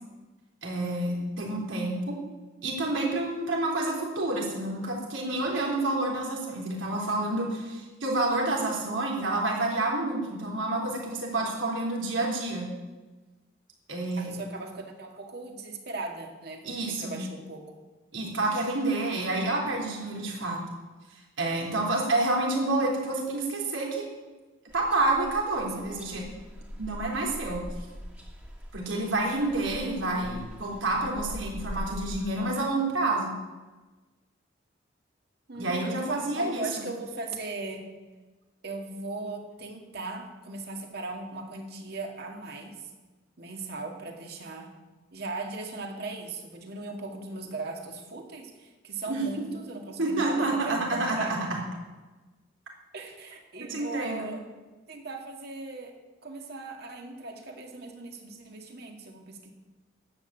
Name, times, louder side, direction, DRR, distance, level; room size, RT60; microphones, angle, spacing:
voice 1, 0.6-2.2 2.6-12.7 13.9-14.4 16.6-17.2 18.1-20.6 21.4-24.1 24.7-26.2 26.8-27.6 28.7-33.3 35.6-36.8 49.1-49.5 50.0-51.6 53.6-54.3, right 2 dB, 80° right, -1 dB, 3.7 m, -29 dB
voice 2, 14.2-17.7 25.6-26.2 35.5-37.8 38.6-42.9 43.4-44.8 45.1-51.5 52.9-54.4 54.9-55.9 56.2-59.5, right 3 dB, 55° right, 2 dB, 2.0 m, -38 dB
sound 1, 24.7-32.2, equal, 10° right, 1.8 m, -42 dB
11.0 x 8.5 x 8.3 m, 1.2 s
head